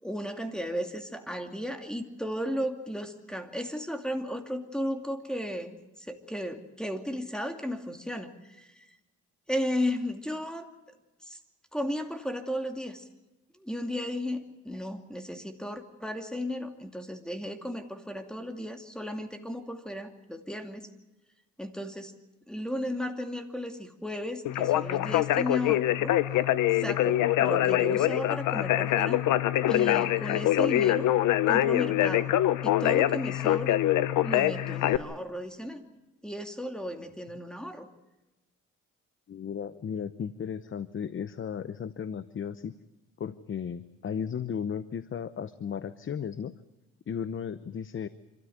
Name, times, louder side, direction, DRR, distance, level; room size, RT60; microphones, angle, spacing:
voice 1, 0.0-8.9 9.5-10.7 11.2-11.4 11.7-13.1 13.5-20.9 21.6-22.1 22.5-26.1 26.7-29.2 29.7-31.1 31.5-32.3 32.6-33.8 34.2-35.8 36.2-37.9, equal, ahead, 6 dB, 2.6 m, -35 dB
Conversation, 24.5-35.0, left 13 dB, 85° left, 0.9 m, -24 dB
voice 2, 39.3-42.7 43.2-46.5 47.1-48.1, left 7 dB, 40° left, 14 dB, 0.9 m, -35 dB
26.5 x 13.5 x 9.4 m, 1.0 s
cardioid pair, 90°, 30 cm